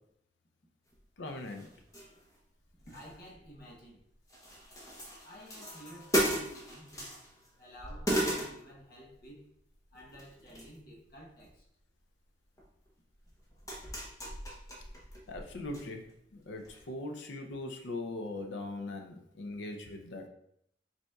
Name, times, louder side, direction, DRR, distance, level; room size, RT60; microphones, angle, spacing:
sound 1, 0.9-1.0 1.4-2.4 2.7-4.0 4.3-7.5 7.8-9.2 9.9-10.8 11.1-11.6 12.6-12.7 13.2-15.8 16.1-16.2 16.6-16.8, right 1 dB, 20° left, 0.9 m, -36 dB
voice 1, 1.2-1.7 15.3-16.0 16.3-20.3, left 2 dB, 80° left, 3 dB, 0.6 m, -40 dB
voice 2, 2.9-4.0 5.2-6.9 7.6-9.5 9.9-11.6, equal, 55° left, -4 dB, 1.1 m, -52 dB
5.2 x 4.2 x 2.3 m, 0.71 s
head